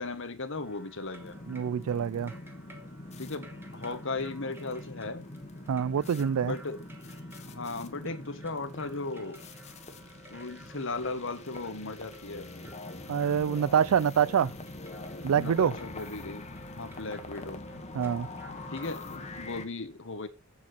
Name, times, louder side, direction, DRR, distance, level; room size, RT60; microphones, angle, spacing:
voice 1, 0.0-1.4 3.2-5.3 6.4-6.8 7.5-9.4 10.3-12.5 15.3-16.4 16.8-17.6 18.7-20.3, left 3 dB, 65° left, 1.4 m, -37 dB
sound 1, 0.6-19.3, equal, 10° right, 1.7 m, -54 dB
sound 2, 1.2-19.7, left 2 dB, 30° left, 1.3 m, -44 dB
voice 2, 1.5-2.3 5.7-6.5 13.1-14.5 15.2-15.7 17.9-18.3, right 8 dB, 90° right, 0.4 m, -26 dB
8.5 x 7.4 x 4.2 m
head